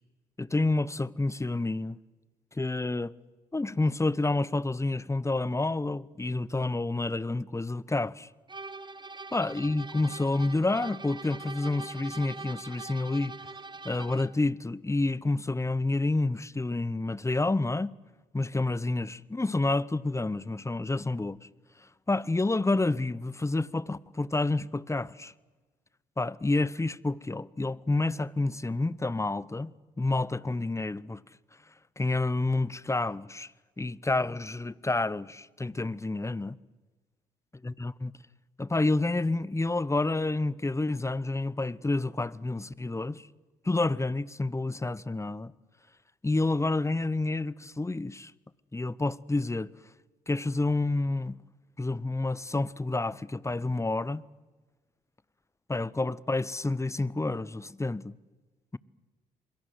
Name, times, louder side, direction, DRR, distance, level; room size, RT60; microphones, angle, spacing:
voice 1, 0.4-2.0 2.6-3.1 3.5-8.3 9.3-13.3 13.8-17.9 18.3-21.4 22.1-25.3 26.2-31.2 32.0-33.5 33.8-36.6 37.6-38.1 38.6-43.3 43.6-45.5 46.2-48.3 48.7-49.7 50.3-51.4 51.8-54.2 55.7-58.1, left 2 dB, 15° left, 0.9 m, -29 dB
sound 1, 8.5-14.4, right 3 dB, 25° right, 1.3 m, -43 dB
28.0 x 22.0 x 7.9 m
hypercardioid pair, 45°, 20 cm